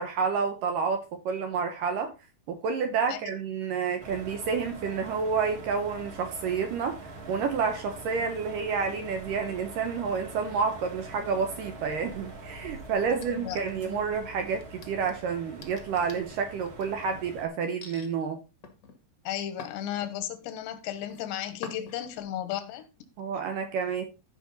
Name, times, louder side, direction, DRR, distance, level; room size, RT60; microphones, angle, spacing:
voice 1, 0.0-2.1 2.5-18.4 23.2-24.0, right 5 dB, 70° right, 2.1 m, -29 dB
sound 1, 4.0-17.5, right 2 dB, 45° right, 1.9 m, -44 dB
sound 2, 13.0-14.0 14.5-17.1 17.8-18.1 18.6-20.4 20.8-21.2 21.6-22.2, left 4 dB, 55° left, 1.2 m, -47 dB
voice 2, 13.1-14.0 19.2-22.9, left 11 dB, 90° left, 3.3 m, -35 dB
13.5 x 5.5 x 4.0 m
omnidirectional pair, 4.9 m